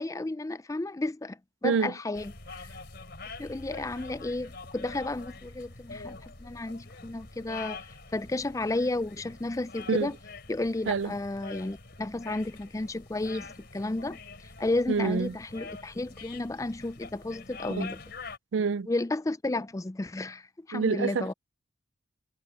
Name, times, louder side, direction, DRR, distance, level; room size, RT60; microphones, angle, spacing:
voice 1, 0.0-2.7 3.4-7.8 8.1-10.2 10.5-18.0 18.9-21.3, left 2 dB, 15° left, 0.4 m, -32 dB
voice 2, 1.6-1.9 9.9-10.1 10.9-11.1 14.9-15.3 17.7-17.9 18.5-18.9 20.7-21.3, right 5 dB, 70° right, 0.4 m, -27 dB
sound 1, 2.1-18.4, left 3 dB, 55° left, 3.4 m, -45 dB
head